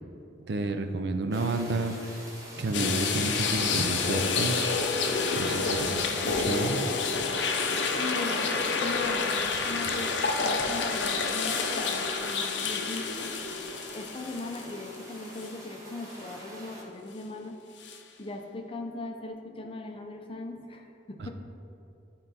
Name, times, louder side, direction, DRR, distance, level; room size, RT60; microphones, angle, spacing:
voice 1, 0.5-2.1 2.5-4.7 5.4-6.8 21.2-21.3, right 2 dB, 65° right, 7 dB, 0.5 m, -31 dB
sound 1, 1.3-16.8, equal, 20° right, 1.3 m, -46 dB
sound 2, 2.7-14.9 15.4-15.5 17.8-18.0, left 4 dB, 70° left, 0.6 m, -29 dB
voice 2, 5.9-6.6 8.0-13.3 13.7-17.6 18.2-21.3, left 2 dB, 30° left, 3 dB, 0.6 m, -39 dB
10.5 x 3.9 x 4.2 m, 2.7 s
head